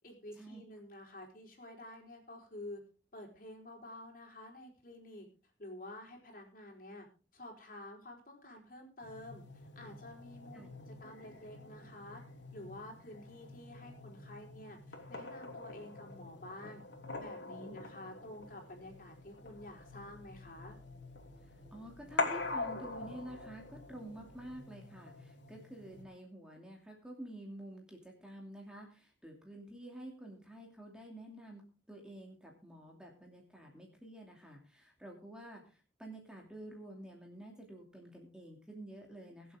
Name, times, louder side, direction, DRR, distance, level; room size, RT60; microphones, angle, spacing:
voice 1, 0.0-2.8 3.1-5.3 5.6-7.1 7.3-9.4 9.7-12.2 12.5-16.8 17.2-20.8, left 1 dB, 45° left, 1 dB, 4.5 m, -50 dB
sound 1, 9.0-26.0, left 3 dB, 75° left, 3.1 m, -44 dB
sound 2, 18.4-24.6, equal, 20° left, 6.4 m, -61 dB
voice 2, 21.4-31.6 31.9-39.6, right 1 dB, 5° right, 0 dB, 2.7 m, -50 dB
23.5 x 7.9 x 3.7 m, 0.36 s
head